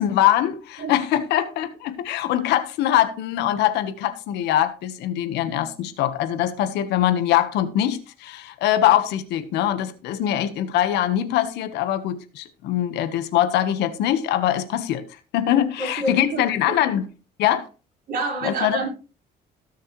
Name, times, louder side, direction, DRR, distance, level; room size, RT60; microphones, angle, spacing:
voice 1, 0.0-15.0 15.3-17.1 17.4-17.6 18.4-18.8, left 12 dB, 85° left, 1.4 m, -22 dB
voice 2, 15.8-16.4 18.1-18.9, right 2 dB, 65° right, 5.2 m, -27 dB
17.5 x 6.6 x 3.2 m
cardioid pair, 110°, 17 cm